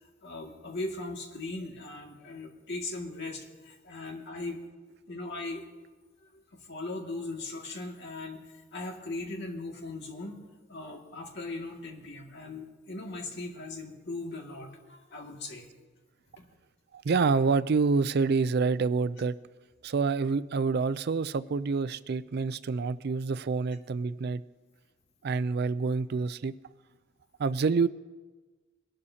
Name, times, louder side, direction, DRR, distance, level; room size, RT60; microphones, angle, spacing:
voice 1, 0.2-4.6 5.1-5.6 6.2-6.4 6.7-8.4 8.7-10.4 10.7-15.7 16.4-16.5, left 2 dB, 60° left, 0 dB, 2.1 m, -39 dB
voice 2, 16.9-19.3 19.8-24.4 25.2-26.5 27.4-27.9, right 4 dB, 55° right, 16 dB, 0.4 m, -27 dB
22.5 x 12.0 x 2.8 m, 1.3 s
head